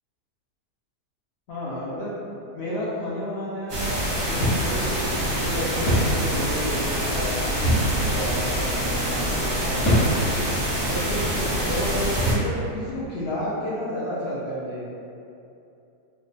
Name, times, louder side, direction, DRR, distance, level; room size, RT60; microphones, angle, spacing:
voice 1, 1.5-2.1 2.5-3.9 4.2-4.4 4.7-7.4 8.0-10.4 10.8-14.8, left 1 dB, 75° left, -8 dB, 0.5 m, -31 dB
sound 1, 3.7-12.3, equal, 45° right, 0.7 m, -26 dB
sound 2, 4.4-4.7 5.0-5.1 5.9-6.2 7.6-8.0 8.7-8.9 9.8-10.2 10.9-11.1 12.2-12.5, equal, 55° left, 1.0 m, -22 dB
3.0 x 2.1 x 4.0 m, 2.7 s
omnidirectional pair, 1.8 m